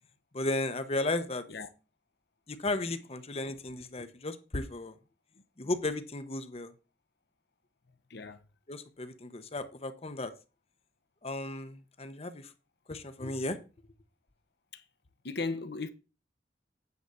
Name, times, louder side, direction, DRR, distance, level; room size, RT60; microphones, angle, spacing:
voice 1, 0.3-1.4 2.5-5.0 5.6-6.7 8.7-10.3 11.2-12.5 12.9-13.6, left 2 dB, 35° left, 0.9 m, -34 dB
voice 2, 8.1-8.5 14.7-14.8 15.2-15.9, left 3 dB, 60° left, 0.9 m, -37 dB
9.5 x 3.9 x 6.9 m
head